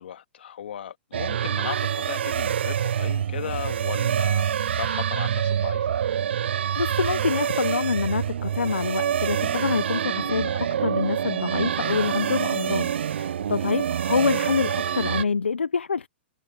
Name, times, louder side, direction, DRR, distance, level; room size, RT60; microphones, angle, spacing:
voice 1, 0.0-6.0 13.9-14.3, left 9 dB, 70° left, 2.3 m, -36 dB
sound 1, 1.1-15.2, right 9 dB, 75° right, 0.3 m, -26 dB
voice 2, 6.4-16.1, left 5 dB, 90° left, 0.8 m, -26 dB
hypercardioid pair, 115°, 6 cm